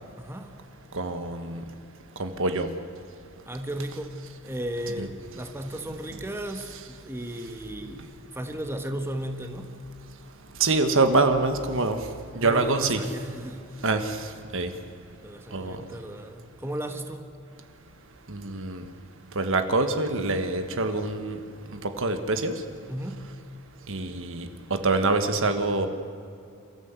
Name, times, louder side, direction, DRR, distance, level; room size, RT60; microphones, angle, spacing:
voice 1, 0.2-0.5 3.4-4.2 4.4-8.0 8.3-9.7 12.4-13.6 15.2-17.2 22.9-23.2, right 1 dB, 10° right, 5 dB, 1.5 m, -35 dB
voice 2, 0.9-1.6 2.2-2.7 5.0-5.1 10.6-12.0 12.3-13.1 13.8-14.3 14.5-14.7 15.5-15.8 18.3-18.8 19.3-21.4 21.8-22.5 23.9-25.9, right 3 dB, 65° right, 7 dB, 1.6 m, -25 dB
28.0 x 14.0 x 8.2 m, 2.6 s
head